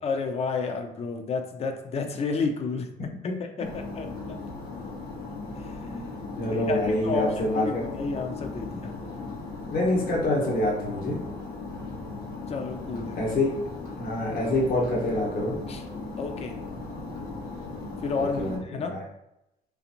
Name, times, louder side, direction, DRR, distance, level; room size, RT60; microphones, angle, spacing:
voice 1, 0.0-4.4 4.8-4.9 5.6-6.2 6.5-9.0 12.5-13.4 15.7-15.8 16.2-16.6 18.0-19.0, left 4 dB, 40° left, 5 dB, 0.6 m, -32 dB
sound 1, 3.6-18.6, left 3 dB, 80° left, 1.4 m, -37 dB
voice 2, 6.4-7.9 9.7-11.2 13.2-13.6 14.0-15.5 18.4-19.0, left 1 dB, 60° left, -2 dB, 1.2 m, -26 dB
3.9 x 3.3 x 3.0 m, 0.85 s
cardioid pair, 110°, 17 cm